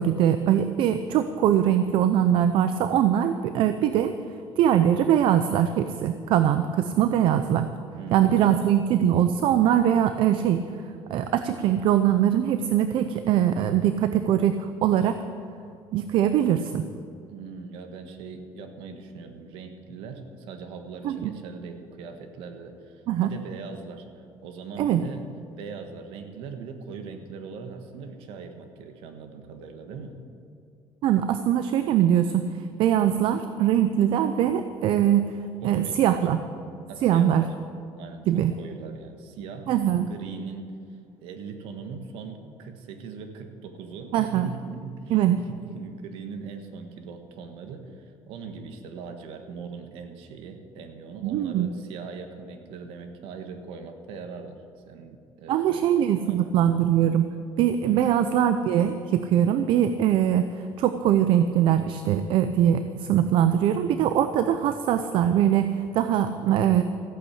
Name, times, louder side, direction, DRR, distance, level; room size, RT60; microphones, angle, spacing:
voice 1, 0.0-4.1 4.6-7.7 8.1-10.6 11.1-15.2 15.9-16.8 21.0-21.3 23.1-23.3 24.8-25.0 31.0-32.4 32.8-35.3 35.6-36.4 37.0-37.5 38.3-38.5 39.7-40.1 44.1-44.5 45.1-45.4 51.2-51.7 55.5-57.3 57.6-60.5 60.8-66.8, right 10 dB, 65° right, 10 dB, 0.6 m, -22 dB
voice 2, 8.0-8.6 17.3-25.3 25.6-30.2 35.6-36.2 36.9-37.5 38.0-39.7 40.1-40.8 41.2-54.6 54.9-56.6 57.8-58.1, right 5 dB, 80° right, 7 dB, 1.5 m, -40 dB
14.5 x 8.6 x 8.6 m, 2.4 s
cardioid pair, 110°, 9 cm